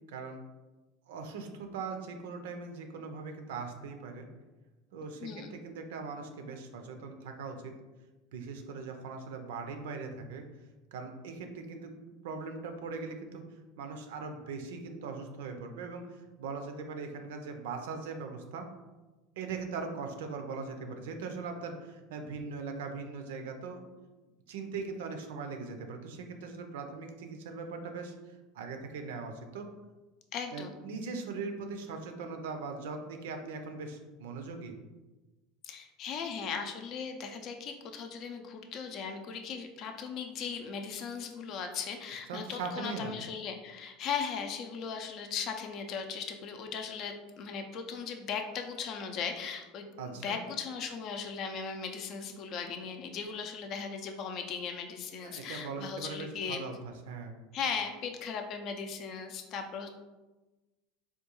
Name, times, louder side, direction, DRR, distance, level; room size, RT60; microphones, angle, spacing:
voice 1, 0.1-0.4 1.1-4.3 4.9-7.7 8.3-10.4 10.9-11.9 12.2-13.4 13.8-18.7 19.4-23.8 24.5-29.7 30.5-34.7 42.3-43.2 50.0-50.4 55.2-57.3, right 4 dB, 80° right, 5 dB, 0.4 m, -40 dB
voice 2, 30.3-30.7 35.6-56.6 57.5-59.9, left 6 dB, 50° left, 5 dB, 0.4 m, -38 dB
3.6 x 2.3 x 2.9 m, 1.2 s
supercardioid pair, 105°, 0 cm